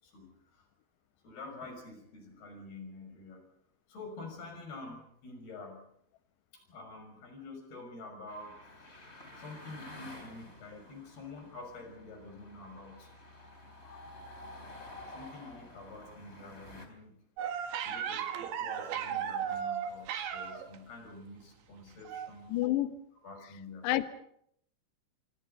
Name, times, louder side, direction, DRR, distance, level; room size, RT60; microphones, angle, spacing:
voice 1, 0.0-0.7 1.2-3.4 3.9-5.9 6.7-8.6 9.3-13.1 15.1-17.2 17.8-22.6 23.2-23.9, left 2 dB, 55° left, 5 dB, 7.9 m, -47 dB
sound 1, 8.3-16.9, left 1 dB, 15° left, 3.2 m, -50 dB
sound 2, 17.4-20.8 22.1-22.3 22.6-22.7, right 8 dB, 75° right, 3.9 m, -35 dB
voice 2, 22.5-23.0 23.8-24.1, left 14 dB, 70° left, 11 dB, 3.2 m, -29 dB
27.0 x 26.0 x 5.5 m, 0.69 s
omnidirectional pair, 5.4 m